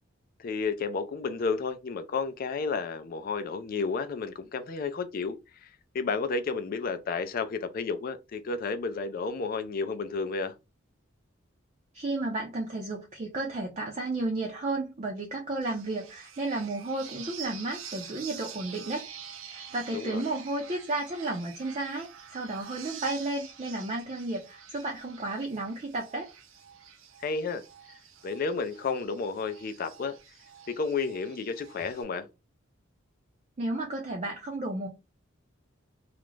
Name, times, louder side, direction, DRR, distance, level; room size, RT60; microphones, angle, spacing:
voice 1, 0.4-5.4 5.6-5.7 5.9-10.5 19.9-20.2 27.2-27.6 28.2-30.1 30.7-32.3, left 4 dB, 45° left, 0.4 m, -31 dB
voice 2, 11.9-19.1 19.5-26.3 33.6-34.9, right 2 dB, 35° right, 0.5 m, -33 dB
sound 1, 15.6-32.0, right 7 dB, 85° right, 0.5 m, -47 dB
2.4 x 2.0 x 3.1 m
head